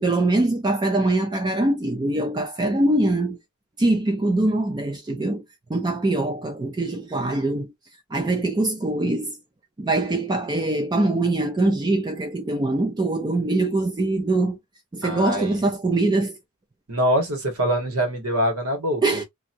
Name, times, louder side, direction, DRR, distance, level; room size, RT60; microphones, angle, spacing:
voice 1, 0.0-3.4 3.8-5.4 5.7-7.7 8.1-9.4 9.8-14.6 14.9-16.4 19.0-19.2, right 2 dB, 20° right, 0.4 m, -23 dB
voice 2, 15.0-15.6 16.9-19.0, equal, 75° right, 1.6 m, -24 dB
3.1 x 2.5 x 2.7 m
head